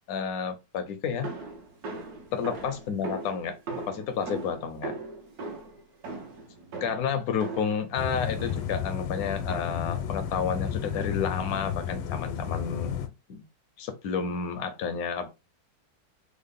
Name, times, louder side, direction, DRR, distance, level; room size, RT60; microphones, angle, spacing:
voice 1, 0.1-1.3 2.3-4.9 6.8-13.0 13.3-13.4 13.8-15.3, left 6 dB, 70° left, 0.9 m, -31 dB
sound 1, 1.2-7.9 8.4-8.8 9.5-10.0, right 3 dB, 65° right, 1.2 m, -39 dB
sound 2, 8.0-13.1, left 8 dB, 90° left, 1.3 m, -32 dB
3.5 x 2.0 x 3.5 m
omnidirectional pair, 2.0 m